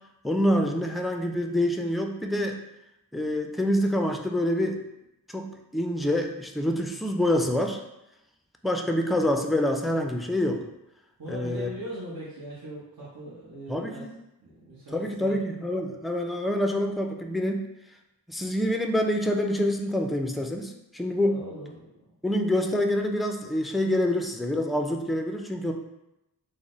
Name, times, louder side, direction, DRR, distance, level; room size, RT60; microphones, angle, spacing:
voice 1, 0.2-2.6 3.1-4.8 5.3-7.8 8.6-10.6 11.3-11.7 13.7-14.1 14.9-17.7 18.3-21.4 22.2-25.7, left 1 dB, ahead, 4 dB, 0.3 m, -26 dB
voice 2, 11.2-14.1 14.4-15.4 21.2-21.9, right 1 dB, 60° right, -8 dB, 1.0 m, -40 dB
3.8 x 2.1 x 3.0 m, 0.89 s
cardioid pair, 45°, 39 cm